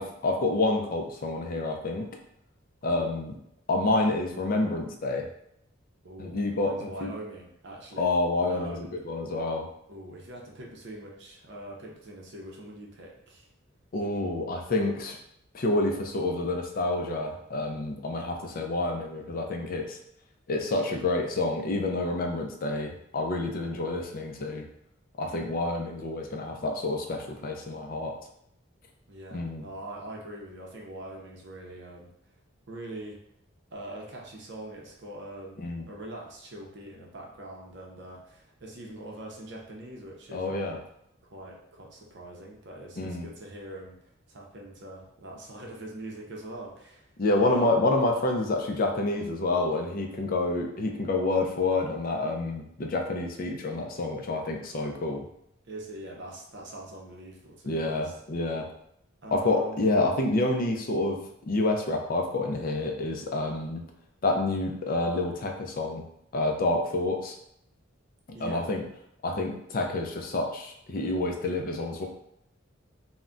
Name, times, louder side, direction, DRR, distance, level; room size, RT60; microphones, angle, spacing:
voice 1, 0.0-2.1 2.8-3.3 3.7-5.3 6.2-7.1 8.0-9.7 13.9-15.2 15.5-20.0 20.5-24.7 25.2-28.1 29.3-29.6 35.6-35.9 40.3-40.8 43.0-43.3 47.2-55.3 57.7-58.7 59.3-61.2 61.5-63.8 64.2-66.0 66.3-67.4 68.4-68.8 69.2-72.1, left 2 dB, 40° left, 2 dB, 0.4 m, -28 dB
voice 2, 2.8-3.2 6.0-8.1 8.5-8.9 9.9-13.5 25.3-25.6 29.1-32.1 32.7-33.2 33.7-35.6 35.9-40.8 41.3-43.9 44.3-47.0 47.3-47.8 55.7-58.1 59.2-59.8 68.3-68.6, right 1 dB, 55° right, -1 dB, 0.6 m, -43 dB
2.2 x 2.1 x 3.6 m, 0.74 s
head